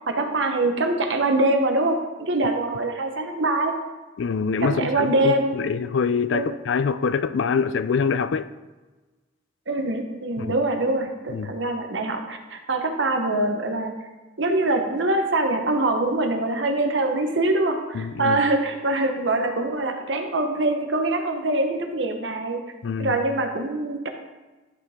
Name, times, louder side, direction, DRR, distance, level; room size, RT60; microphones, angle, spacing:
voice 1, 0.1-3.7 4.6-5.6 6.3-6.5 9.7-13.9 14.4-22.6 23.0-24.1, right 2 dB, 70° right, 1.0 m, -24 dB
voice 2, 4.2-8.5 10.4-10.5 11.3-11.5 17.9-18.4 22.8-23.2, left 5 dB, 70° left, 0.4 m, -25 dB
11.5 x 5.8 x 3.6 m
head